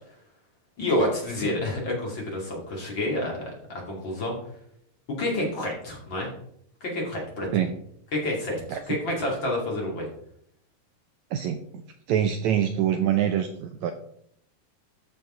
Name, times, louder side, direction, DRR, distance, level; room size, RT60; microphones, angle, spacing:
voice 1, 0.8-4.4 5.2-6.3 6.8-7.6 8.1-10.1, left 1 dB, 35° left, -2 dB, 3.0 m, -29 dB
voice 2, 11.3-11.8 12.1-13.9, right 10 dB, 75° right, 7 dB, 1.8 m, -25 dB
13.5 x 6.8 x 3.8 m, 0.70 s
omnidirectional pair, 3.8 m